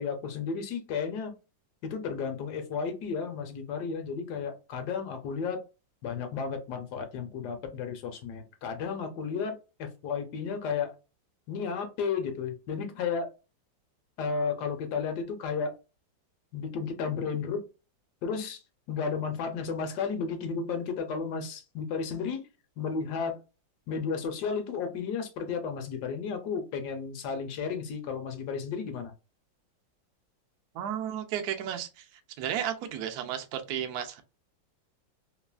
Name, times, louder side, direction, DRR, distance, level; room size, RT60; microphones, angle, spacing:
voice 1, 0.0-1.3 1.8-5.6 6.0-10.9 11.5-13.3 14.2-15.8 16.5-17.7 18.2-18.6 18.9-22.4 22.8-23.4 23.9-29.1, left 5 dB, 65° left, 1.2 m, -33 dB
voice 2, 30.7-32.1 32.4-34.2, right 9 dB, 70° right, 0.9 m, -33 dB
3.2 x 2.3 x 2.3 m
omnidirectional pair, 2.1 m